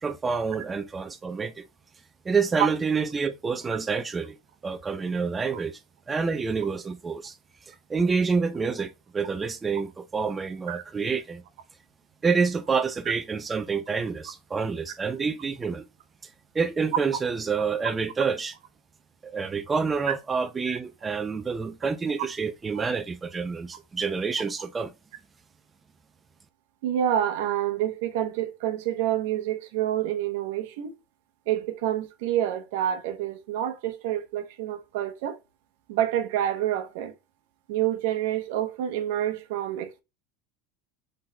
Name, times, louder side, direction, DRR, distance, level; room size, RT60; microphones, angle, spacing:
voice 1, 0.0-1.7 2.2-4.4 4.6-5.8 6.1-7.4 7.7-11.4 12.2-15.9 16.5-18.5 19.2-24.9, right 5 dB, 20° right, 0.4 m, -28 dB
voice 2, 26.8-30.9 31.5-35.4 35.9-37.1 37.7-40.0, right 11 dB, 75° right, 0.8 m, -28 dB
5.6 x 3.9 x 2.2 m
supercardioid pair, 125°, 0 cm